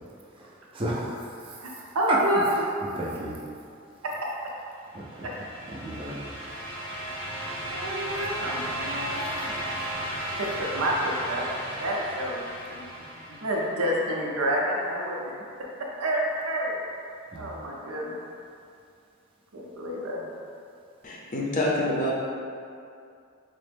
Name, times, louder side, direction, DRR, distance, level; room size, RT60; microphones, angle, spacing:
voice 1, 0.4-1.6 2.1-2.2 2.9-3.4 4.9-5.3 5.7-6.4 17.3-17.5, right 1 dB, 25° right, -4 dB, 0.4 m, -32 dB
voice 2, 1.9-2.7 4.0-4.1 5.2-5.3 7.7-9.6 10.4-12.4 12.7-12.9 13.3-15.3 15.8-16.8 17.3-18.2 19.5-20.3, equal, 90° right, -3 dB, 0.6 m, -29 dB
sound 1, 4.9-13.8, right 1 dB, 5° left, 0.8 m, -35 dB
voice 3, 21.0-22.1, left 1 dB, 40° left, -4 dB, 0.5 m, -26 dB
4.1 x 2.0 x 3.3 m, 2.5 s
head